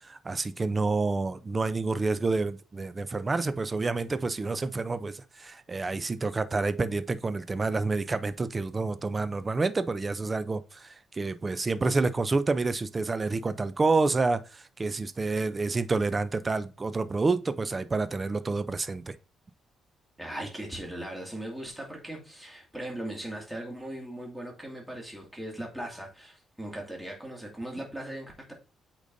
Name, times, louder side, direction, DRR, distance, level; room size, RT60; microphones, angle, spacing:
voice 1, 0.0-19.1, right 3 dB, 25° right, 0.5 m, -28 dB
voice 2, 20.2-28.5, right 1 dB, 5° right, 2.2 m, -39 dB
8.4 x 5.1 x 2.6 m
cardioid pair, 90°, 0 cm